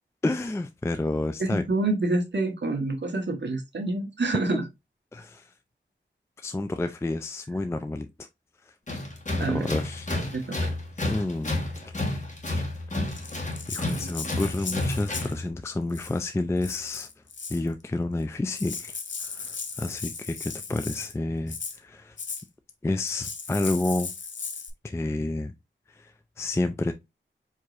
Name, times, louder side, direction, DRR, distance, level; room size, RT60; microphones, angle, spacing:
voice 1, 0.2-1.7 5.1-5.5 6.4-8.3 9.5-10.1 10.5-10.6 11.0-11.6 12.5-12.6 13.7-17.1 17.5-22.2 22.8-24.1 24.8-25.5 25.9-26.1 26.4-26.9, left 2 dB, 15° left, 0.3 m, -30 dB
voice 2, 1.4-4.6 9.4-9.7 10.3-10.7, right 2 dB, 60° right, 1.1 m, -27 dB
Tools, 8.9-15.4, left 1 dB, 40° left, 1.4 m, -31 dB
Rattle (instrument), 13.1-15.4 15.9-16.3 16.6-17.7 18.2-18.3 18.5-21.1 21.5-21.8 22.2-22.4 23.1-24.7, left 5 dB, 70° left, 0.6 m, -37 dB
4.6 x 2.9 x 2.4 m
wide cardioid pair, 80°, 20 cm